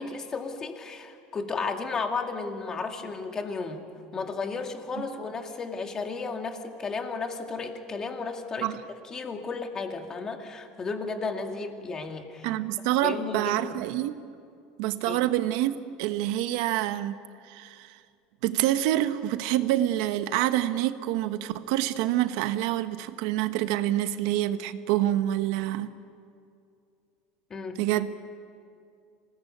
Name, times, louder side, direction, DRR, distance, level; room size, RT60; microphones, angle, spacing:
voice 1, 0.0-8.8 9.0-12.5 13.0-13.9 15.1-15.2 27.5-27.8, left 4 dB, 20° left, 4 dB, 2.1 m, -34 dB
voice 2, 12.4-14.1 14.8-17.2 17.5-18.0 18.4-25.9 27.8-28.1, right 14 dB, 70° right, 10 dB, 1.2 m, -27 dB
26.5 x 19.0 x 8.6 m, 2.4 s
cardioid pair, 155°, 3 cm